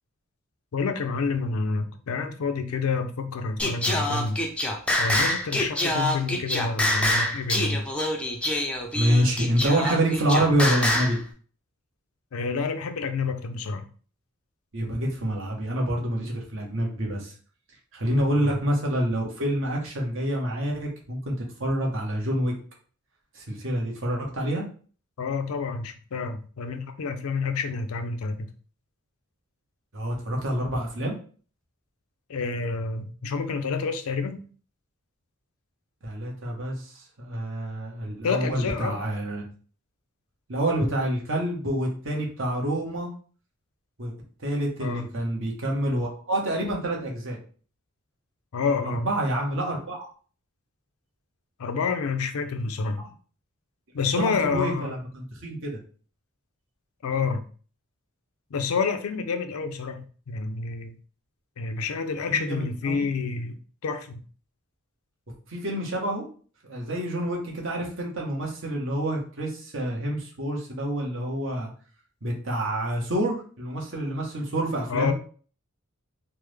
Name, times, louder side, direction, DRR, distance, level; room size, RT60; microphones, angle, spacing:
voice 1, 0.7-4.4 5.0-7.8 12.3-13.9 18.4-18.5 25.2-28.5 32.3-34.4 38.2-39.0 44.8-45.1 48.5-49.1 51.6-53.0 53.9-54.9 57.0-57.4 58.5-61.0 61.6-64.2 74.9-75.1, left 4 dB, 80° left, 8 dB, 0.4 m, -28 dB
Singing, 3.6-11.2, left 1 dB, 5° left, 0.4 m, -26 dB
voice 2, 8.9-11.2 14.7-17.3 17.9-22.5 23.3-24.7 29.9-31.1 36.0-39.4 40.5-43.1 44.0-44.1 44.4-47.4 48.8-50.0 54.2-55.8 62.3-63.0 65.5-66.2 66.6-71.7 72.2-75.1, right 1 dB, 60° right, -1 dB, 1.0 m, -27 dB
3.4 x 2.0 x 3.2 m, 0.41 s
head